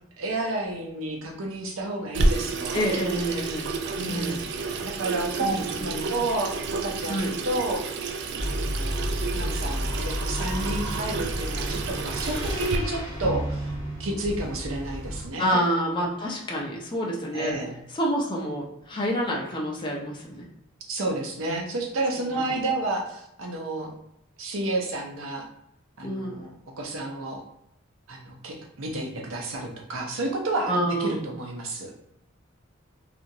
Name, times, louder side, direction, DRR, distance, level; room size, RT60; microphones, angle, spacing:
voice 1, 0.2-2.9 3.9-4.4 4.8-6.5 6.8-7.8 8.4-13.7 14.0-15.6 17.3-17.8 20.9-23.9 24.4-25.5 26.0-26.5 26.8-27.4 28.1-31.9, right 2 dB, 85° right, 1 dB, 0.7 m, -31 dB
Water tap faucet / Sink (filling or washing), 2.1-12.8, right 3 dB, 55° right, 0.3 m, -30 dB
voice 2, 2.7-3.7 4.1-4.4 5.4-6.1 7.1-7.3 15.4-17.6 17.9-20.4 26.0-26.5 30.7-31.3, equal, 25° left, -2 dB, 0.5 m, -28 dB
sound 1, 8.4-15.3, equal, 15° right, 1.4 m, -31 dB
2.9 x 2.4 x 2.6 m, 0.78 s
head